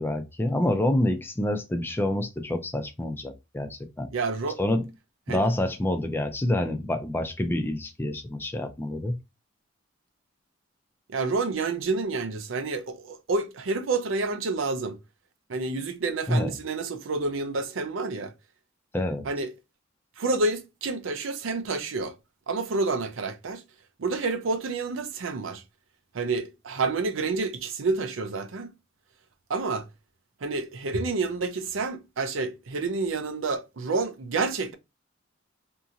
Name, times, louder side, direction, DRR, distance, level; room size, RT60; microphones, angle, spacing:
voice 1, 0.0-4.1 4.6-4.9 5.3-9.2 16.3-16.5 18.9-19.2, left 1 dB, 10° left, 0.4 m, -27 dB
voice 2, 4.1-4.6 5.3-5.5 11.1-15.0 15.5-18.3 19.2-19.5 20.2-22.1 22.5-23.6 24.0-25.6 26.1-28.7 29.5-29.9 30.4-34.7, right 3 dB, 90° right, 0.6 m, -29 dB
2.8 x 2.6 x 2.5 m
head